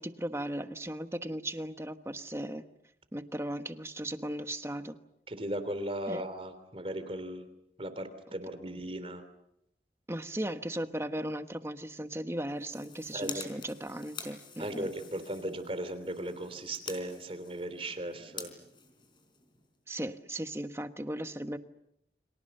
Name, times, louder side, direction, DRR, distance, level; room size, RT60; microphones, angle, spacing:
voice 1, 0.0-2.6 3.1-5.0 6.1-6.2 10.1-14.9 19.9-21.6, right 1 dB, 15° right, 9 dB, 1.2 m, -37 dB
voice 2, 5.3-7.4 7.8-9.2 13.1-13.4 14.6-18.5, right 1 dB, 30° right, 10 dB, 3.2 m, -37 dB
sound 1, 12.5-19.8, left 5 dB, 25° left, 4.1 m, -48 dB
30.0 x 25.5 x 6.8 m, 0.79 s
head